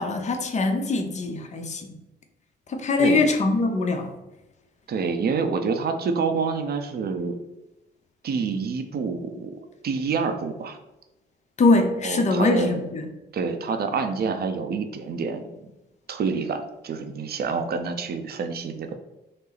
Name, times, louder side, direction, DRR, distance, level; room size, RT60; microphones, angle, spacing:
voice 1, 0.0-1.9 2.7-4.1 11.6-13.1, left 3 dB, 35° left, 5 dB, 0.7 m, -22 dB
voice 2, 4.9-7.4 8.2-10.8 12.0-12.8 13.3-15.6 16.1-18.9, right 5 dB, 50° right, 7 dB, 0.6 m, -27 dB
5.4 x 2.0 x 3.9 m, 0.95 s
cardioid pair, 90°, 20 cm